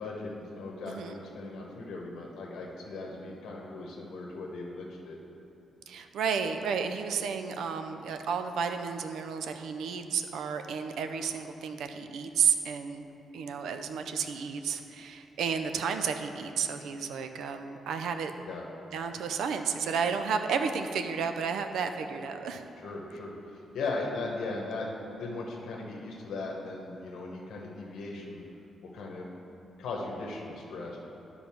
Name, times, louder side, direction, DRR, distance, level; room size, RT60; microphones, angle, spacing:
voice 1, 0.0-5.2 18.4-18.6 22.8-28.4 28.9-29.3 29.8-31.0, left 3 dB, 85° left, -2 dB, 1.0 m, -38 dB
voice 2, 0.9-1.2 5.9-13.1 13.3-18.3 18.9-22.7, right 6 dB, 85° right, 7 dB, 0.5 m, -32 dB
10.5 x 3.9 x 5.8 m, 3.0 s
wide cardioid pair, 175°, 0 cm